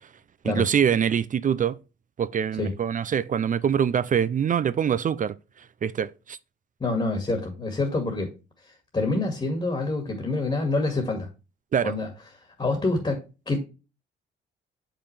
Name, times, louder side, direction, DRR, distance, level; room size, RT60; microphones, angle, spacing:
voice 1, 0.4-1.8 2.2-5.3 5.8-6.4 11.7-11.9, right 8 dB, 40° right, 0.5 m, -24 dB
voice 2, 6.8-8.3 8.6-11.3 11.8-12.1 12.6-13.6, left 2 dB, 25° left, 2.0 m, -27 dB
6.7 x 5.9 x 3.3 m
cardioid pair, 90°, 20 cm